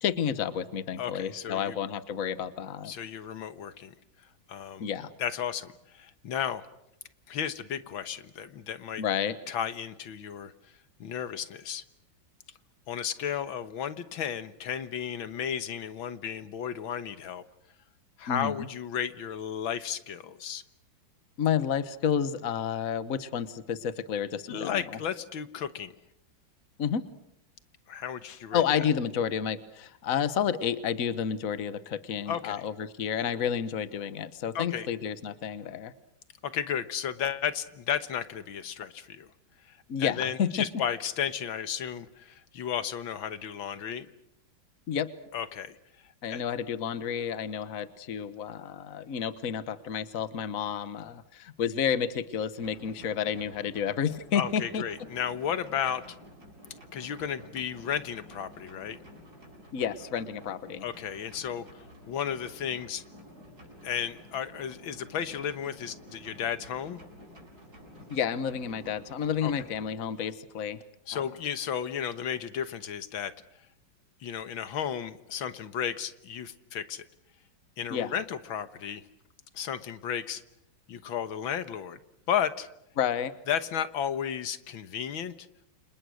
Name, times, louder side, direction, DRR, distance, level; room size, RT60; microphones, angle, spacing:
voice 1, 0.0-2.9 4.8-5.1 9.0-9.4 18.3-18.7 21.4-24.8 26.8-27.0 28.5-35.9 39.9-40.5 44.9-45.1 46.2-54.8 59.7-60.9 68.1-70.8 71.1-71.2 77.9-78.1 83.0-83.3, left 8 dB, 50° left, 14 dB, 1.5 m, -30 dB
voice 2, 1.0-1.8 2.8-3.9 4.5-4.9 5.2-6.6 7.3-9.0 9.5-10.5 11.0-11.8 12.9-17.4 18.2-20.6 24.5-25.9 27.9-28.6 32.3-32.6 34.6-34.9 36.4-39.3 39.6-44.1 45.3-45.8 46.0-46.4 54.3-56.2 56.9-59.0 60.8-63.0 63.8-67.0 69.4-69.5 71.1-73.3 74.2-77.1 77.8-79.0 79.5-80.4 80.9-82.0 82.3-82.7 83.5-85.5, left 8 dB, 85° left, 12 dB, 2.0 m, -33 dB
sound 1, 52.6-69.9, equal, 50° right, 8.2 m, -51 dB
29.5 x 27.5 x 6.4 m, 0.81 s
omnidirectional pair, 2.1 m